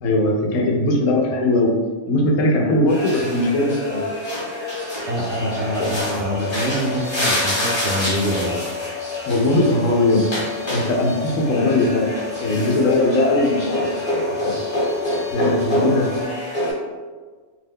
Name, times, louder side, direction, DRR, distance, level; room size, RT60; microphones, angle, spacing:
voice 1, 0.0-1.8 2.1-4.1 5.8-5.9 9.3-10.3 10.7-12.1 12.4-14.0 14.4-14.6 15.3-16.1, left 2 dB, 90° left, 0 dB, 1.0 m, -19 dB
sound 1, 2.9-16.7, equal, 25° left, 0.8 m, -27 dB
sound 2, 5.1-16.2, left 10 dB, 55° right, 0.4 m, -33 dB
voice 2, 5.1-8.6 15.6-15.8, equal, 70° right, -5 dB, 0.9 m, -25 dB
2.7 x 2.1 x 3.5 m, 1.4 s
omnidirectional pair, 1.3 m